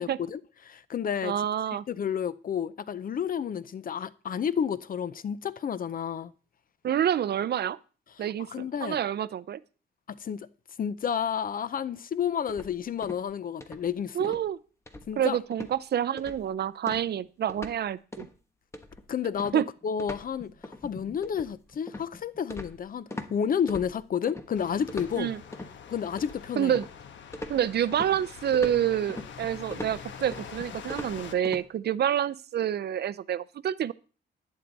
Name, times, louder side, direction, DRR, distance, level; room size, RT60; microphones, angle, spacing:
voice 1, 0.0-1.3 1.9-6.3 8.2-9.0 10.1-10.5 10.8-14.3 15.1-15.4 19.1-25.3 25.9-26.7, left 8 dB, 50° left, 0.6 m, -31 dB
voice 2, 1.2-1.8 6.8-7.8 8.2-9.6 14.1-14.6 15.2-18.3 19.5-19.6 25.2-25.4 26.6-26.9 27.5-33.9, right 10 dB, 60° right, 0.5 m, -28 dB
sound 1, 12.5-13.3 13.6-13.9 14.2-14.5 14.9-15.3 15.5-15.8 16.2-16.5 16.9-17.8 18.1-18.4 18.7-23.3 23.7-24.5 24.9-25.7 26.2-27.0 27.3-31.6, left 1 dB, 15° left, 1.2 m, -41 dB
sound 2, 24.5-31.3, left 7 dB, 85° left, 1.2 m, -45 dB
11.0 x 10.5 x 4.0 m
wide cardioid pair, 130°, 19 cm